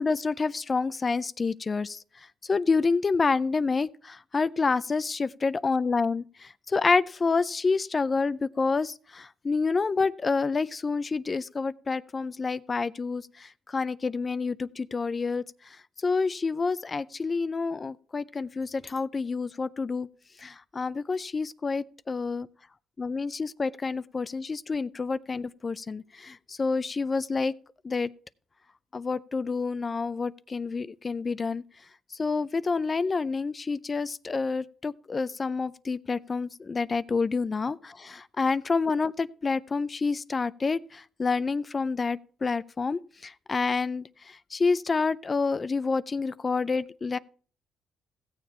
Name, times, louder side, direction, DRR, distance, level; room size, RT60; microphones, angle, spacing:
voice 1, 0.0-2.0 2.4-15.4 16.0-20.1 20.4-22.5 23.0-27.5 27.8-28.1 28.9-31.6 32.2-47.2, left 4 dB, 30° left, 0.4 m, -28 dB
16.0 x 7.2 x 4.3 m
cardioid pair, 90°, 0 cm